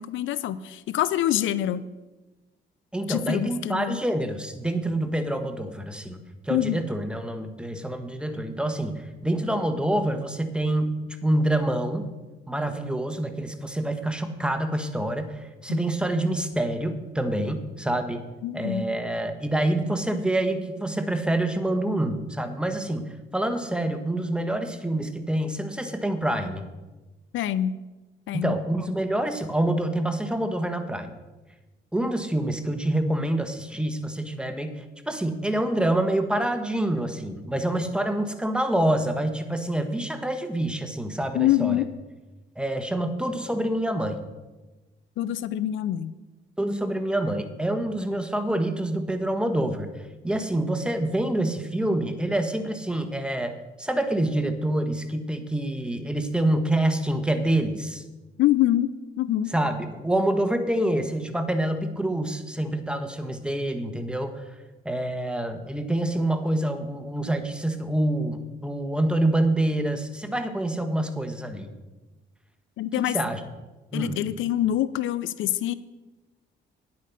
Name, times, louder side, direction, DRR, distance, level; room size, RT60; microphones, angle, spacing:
voice 1, 0.0-1.8 3.1-4.0 6.5-6.8 15.7-15.8 18.4-18.8 27.3-27.7 28.3-28.5 41.3-41.9 45.2-46.1 58.4-58.9 59.2-59.5 72.8-73.2 73.9-75.7, left 13 dB, 80° left, 16 dB, 0.5 m, -25 dB
voice 2, 2.9-6.2 6.4-12.1 12.5-18.3 18.5-26.6 28.3-31.2 31.9-41.8 42.6-44.2 46.6-49.9 50.2-58.0 59.5-64.4 64.8-71.7 73.0-73.4 73.9-74.2, right 1 dB, 5° right, 8 dB, 1.2 m, -26 dB
9.7 x 8.6 x 5.6 m, 1.1 s
cardioid pair, 90°, 20 cm